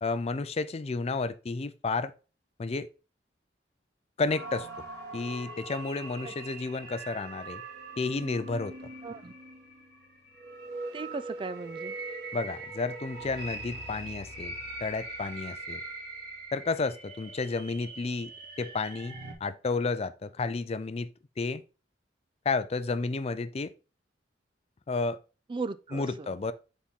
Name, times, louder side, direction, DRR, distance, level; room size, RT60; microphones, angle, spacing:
voice 1, 0.0-2.1 2.6-2.9 4.2-4.7 5.1-7.6 8.0-8.7 12.3-14.5 14.8-15.8 16.5-18.3 18.6-21.1 21.4-21.6 22.5-23.7 24.9-25.2 25.9-26.5, left 3 dB, 35° left, 0.4 m, -31 dB
sound 1, 4.3-19.3, right 2 dB, 60° right, 2.3 m, -42 dB
voice 2, 9.0-9.3 10.9-12.0 25.5-26.3, right 4 dB, 30° right, 0.3 m, -37 dB
7.1 x 4.2 x 3.6 m
head